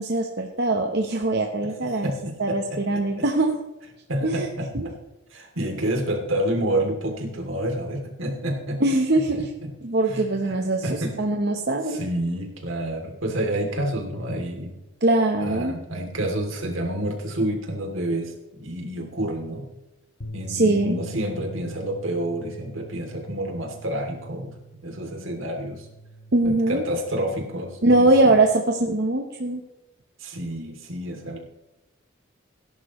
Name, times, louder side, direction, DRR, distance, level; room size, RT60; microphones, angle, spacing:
voice 1, 0.0-2.1 2.4-3.6 4.2-4.5 4.7-4.9 8.8-9.5 9.8-12.0 15.0-15.8 20.5-21.0 26.3-26.8 27.8-29.6, right 2 dB, 55° right, 2 dB, 1.0 m, -22 dB
voice 2, 1.6-3.2 4.1-4.9 5.3-8.8 9.1-9.2 9.6-9.7 10.1-10.5 10.8-11.1 11.9-14.7 15.4-19.7 20.3-24.6 24.8-25.9 26.4-28.3 30.2-31.4, right 1 dB, 75° right, 2 dB, 2.9 m, -29 dB
Bass guitar, 20.2-26.5, right 2 dB, 85° left, 1.7 m, -42 dB
17.5 x 10.5 x 3.1 m, 1.0 s
head